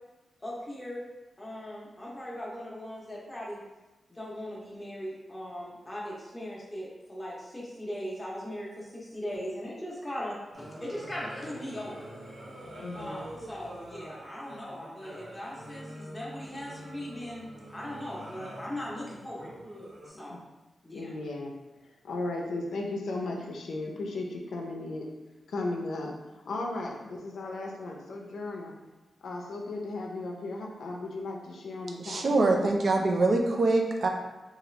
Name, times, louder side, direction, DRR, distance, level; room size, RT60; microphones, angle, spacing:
voice 1, 0.4-1.0 1.4-3.6 4.1-12.1 12.9-19.5 20.0-20.4 20.8-21.1, equal, 10° left, -5 dB, 0.7 m, -39 dB
sound 1, 10.5-20.1, right 1 dB, 80° right, 0.9 m, -45 dB
voice 2, 12.8-13.2 20.3-20.4 20.9-25.1 25.5-26.1 26.5-28.8 29.2-32.4, left 2 dB, 90° left, 0 dB, 0.4 m, -36 dB
voice 3, 32.0-34.1, right 2 dB, 50° right, 2 dB, 0.3 m, -24 dB
2.8 x 2.4 x 3.1 m, 1.1 s
wide cardioid pair, 175°, 0 cm